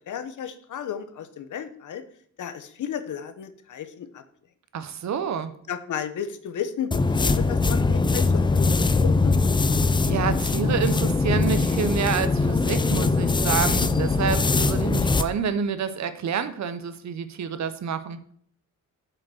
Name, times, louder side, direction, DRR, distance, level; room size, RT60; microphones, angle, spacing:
voice 1, 0.1-2.0 2.4-4.2 5.7-9.6, left 8 dB, 65° left, 10 dB, 0.9 m, -34 dB
voice 2, 4.7-5.5 10.1-18.2, right 7 dB, 55° right, 12 dB, 0.8 m, -28 dB
sound 1, 6.9-15.3, left 3 dB, 15° left, 0.4 m, -22 dB
7.4 x 5.3 x 6.2 m, 0.62 s
wide cardioid pair, 160°, 32 cm